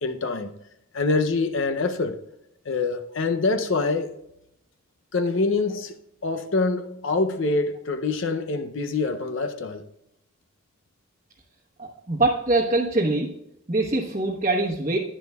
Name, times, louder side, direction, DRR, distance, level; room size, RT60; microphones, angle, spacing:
voice 1, 0.0-0.5 0.9-2.2 2.7-4.2 5.1-5.9 6.2-9.8, left 3 dB, 60° left, 0.6 m, -25 dB
voice 2, 11.8-13.3 13.7-15.0, right 2 dB, 35° right, 1.1 m, -23 dB
11.0 x 10.5 x 2.3 m
head